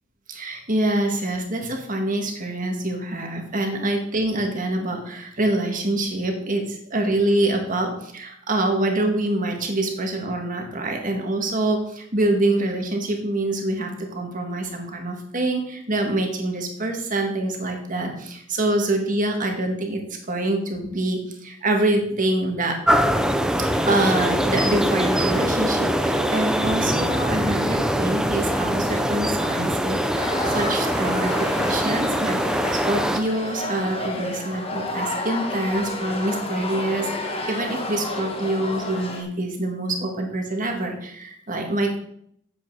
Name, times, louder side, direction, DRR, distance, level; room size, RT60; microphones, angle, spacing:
voice 1, 0.3-20.0 20.3-22.8 23.9-42.0, right 1 dB, 40° right, 3 dB, 1.6 m, -25 dB
sound 1, 22.9-33.2, equal, 5° right, 0.5 m, -23 dB
sound 2, 30.2-39.2, left 1 dB, 30° left, 1.3 m, -31 dB
8.5 x 7.5 x 4.6 m, 0.69 s
head